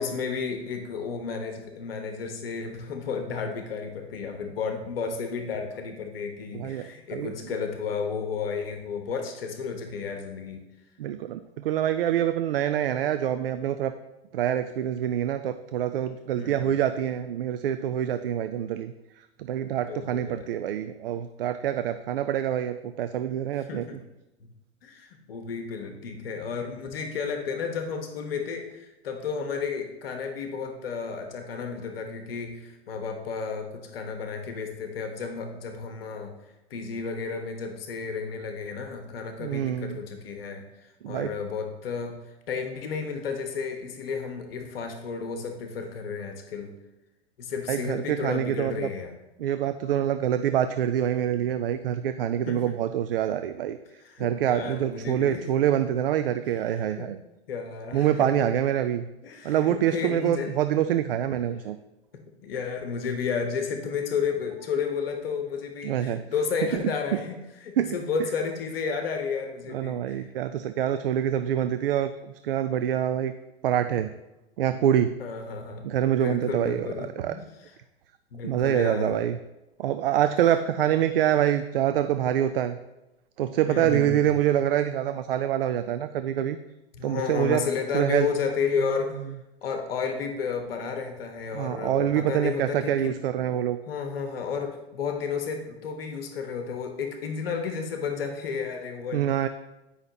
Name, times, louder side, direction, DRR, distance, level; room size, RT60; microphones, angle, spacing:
voice 1, 0.0-10.6 16.4-16.7 19.9-20.5 23.7-24.0 24.8-36.3 36.7-42.1 42.5-46.7 47.4-49.1 52.4-52.8 54.0-55.4 57.0-57.1 57.5-58.5 59.2-60.5 62.4-70.3 75.2-75.8 76.1-77.7 78.3-79.2 83.7-84.3 86.9-89.2 89.6-93.1 93.9-99.3, left 5 dB, 60° left, 4 dB, 1.0 m, -32 dB
voice 2, 6.5-7.5 11.0-13.9 14.3-24.0 39.4-40.0 41.0-41.3 47.7-48.9 49.4-53.8 54.2-57.2 57.9-59.1 59.4-61.8 65.8-66.2 66.7-66.9 67.8-68.0 69.7-73.3 73.6-74.1 74.6-75.2 75.8-76.9 77.2-77.4 78.4-79.4 79.8-82.8 83.4-86.6 87.0-87.6 87.9-88.3 91.5-93.8 99.1-99.5, right 10 dB, 60° right, 10 dB, 0.4 m, -26 dB
9.7 x 5.6 x 2.9 m, 0.98 s
figure-of-eight pair, 90°, 33 cm